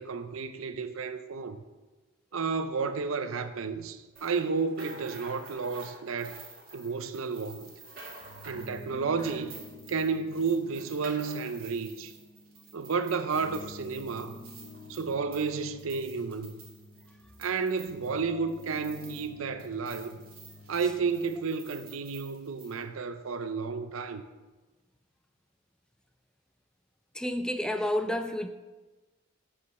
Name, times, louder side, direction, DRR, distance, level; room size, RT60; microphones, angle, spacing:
voice 1, 0.0-1.6 2.3-6.4 6.7-7.7 8.4-9.5 9.9-12.1 12.7-14.4 14.9-16.5 17.4-20.2 20.7-24.2, right 5 dB, 85° right, 0.6 m, -32 dB
sound 1, 4.2-19.3 19.6-22.8, right 3 dB, 45° right, 2.1 m, -50 dB
sound 2, 8.1-21.5, left 2 dB, 60° left, 0.7 m, -50 dB
voice 2, 27.1-28.5, left 1 dB, 5° left, 0.3 m, -30 dB
8.4 x 5.0 x 6.3 m
head